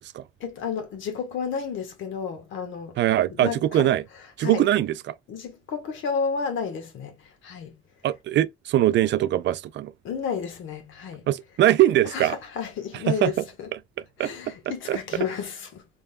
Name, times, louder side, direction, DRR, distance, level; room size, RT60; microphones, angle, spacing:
voice 1, 0.4-3.0 3.4-3.9 4.4-4.7 5.3-7.8 10.0-11.3 12.0-13.7 14.2-15.8, left 6 dB, 80° left, 1.3 m, -31 dB
voice 2, 3.0-4.0 4.4-5.1 8.0-9.9 11.3-12.3 13.1-13.3 14.2-14.3 14.9-15.0, right 13 dB, 65° right, 0.4 m, -22 dB
3.8 x 3.4 x 2.3 m
cardioid pair, 90°, 20 cm